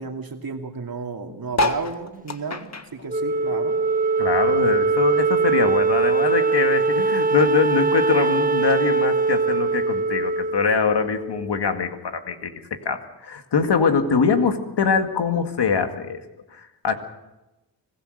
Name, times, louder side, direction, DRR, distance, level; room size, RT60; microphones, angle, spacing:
voice 1, 0.0-3.8, right 4 dB, 55° right, 4 dB, 2.6 m, -33 dB
sound 1, 1.5-4.3 4.6-6.1 6.6-6.7 6.9-7.0 7.2-7.6 8.4-8.5, left 2 dB, 35° left, 1.7 m, -29 dB
Wind instrument woodwind instrument, 3.1-11.7, right 4 dB, 20° right, 1.5 m, -22 dB
voice 2, 4.2-16.2 16.5-16.9, left 5 dB, 65° left, 6 dB, 2.1 m, -23 dB
25.5 x 15.5 x 6.6 m, 0.99 s
cardioid pair, 45°, 43 cm